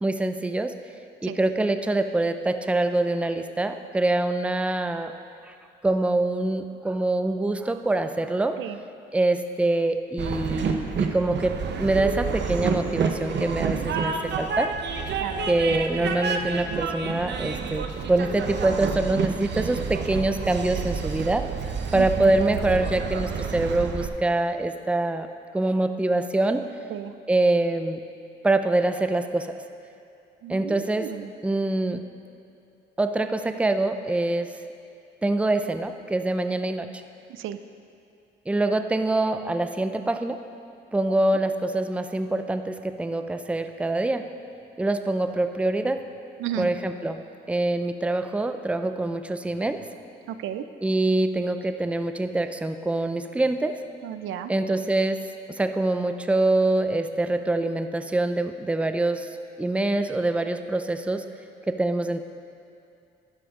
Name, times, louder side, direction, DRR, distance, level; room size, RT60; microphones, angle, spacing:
voice 1, 0.0-0.7 1.2-5.1 5.5-5.6 5.8-8.6 9.1-14.7 15.5-21.5 21.9-25.3 25.5-26.7 27.3-28.0 28.4-29.5 30.5-31.1 31.4-32.0 33.0-34.5 35.2-37.0 38.5-40.4 40.9-44.3 44.8-46.0 46.6-49.8 50.8-53.8 54.5-59.3 59.6-61.2 61.7-62.2, right 2 dB, 5° right, 8 dB, 0.5 m, -25 dB
Train, 10.2-24.1, right 5 dB, 60° right, 0.9 m, -29 dB
voice 2, 21.9-22.3 26.9-27.1 30.4-31.3 37.3-37.6 46.4-46.7 50.3-50.6 54.0-54.5, right 10 dB, 80° right, 11 dB, 0.5 m, -33 dB
11.5 x 10.5 x 3.7 m, 2.5 s
cardioid pair, 90°, 20 cm